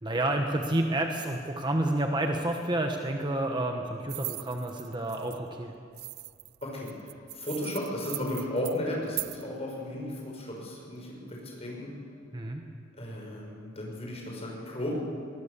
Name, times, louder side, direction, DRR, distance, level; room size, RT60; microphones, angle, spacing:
voice 1, 0.0-5.7 12.3-12.6, right 1 dB, 20° right, 3 dB, 1.2 m, -29 dB
sound 1, 4.1-5.4 6.0-9.4, right 18 dB, 50° right, 0.4 m, -39 dB
voice 2, 6.6-11.9 13.0-14.9, left 1 dB, 30° left, -2 dB, 5.7 m, -35 dB
22.0 x 20.0 x 6.9 m, 2.3 s
head